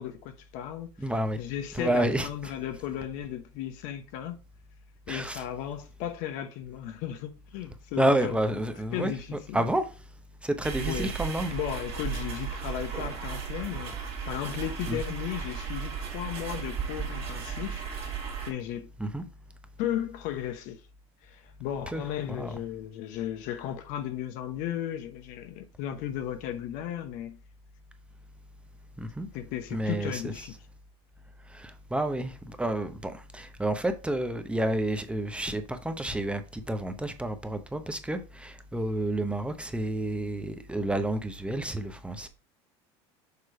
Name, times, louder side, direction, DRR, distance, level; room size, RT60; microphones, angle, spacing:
voice 1, 0.0-0.9 1.4-4.4 5.1-8.4 8.9-9.7 10.9-11.1 11.5-17.9 18.5-18.9 19.8-20.8 21.2-27.4 29.3-30.5, left 11 dB, 65° left, 0.9 m, -35 dB
voice 2, 1.0-1.4 1.7-2.5 5.1-5.4 8.0-9.8 10.4-11.5 14.9-15.0 19.0-19.2 21.9-22.0 22.3-22.5 29.0-29.3 29.7-30.3 31.5-42.3, right 1 dB, 10° right, 0.8 m, -30 dB
sound 1, 10.6-18.5, right 7 dB, 45° right, 2.0 m, -35 dB
6.7 x 3.1 x 4.8 m
supercardioid pair, 95°, 14 cm